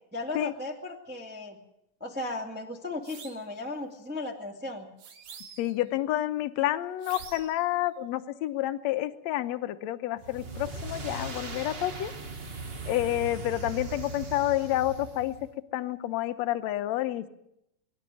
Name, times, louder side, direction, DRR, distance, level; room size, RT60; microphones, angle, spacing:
voice 1, 0.1-1.6 2.0-4.9, left 2 dB, 5° right, 2 dB, 1.8 m, -36 dB
sound 1, 3.0-3.5 5.0-5.8 7.0-7.6, right 6 dB, 80° right, 3.3 m, -46 dB
voice 2, 5.6-12.1 12.9-15.3 15.7-17.3, left 14 dB, 75° left, 11 dB, 2.1 m, -29 dB
sound 2, 10.2-15.5, right 3 dB, 40° right, 0.8 m, -39 dB
22.5 x 12.0 x 9.9 m, 0.81 s
omnidirectional pair, 3.3 m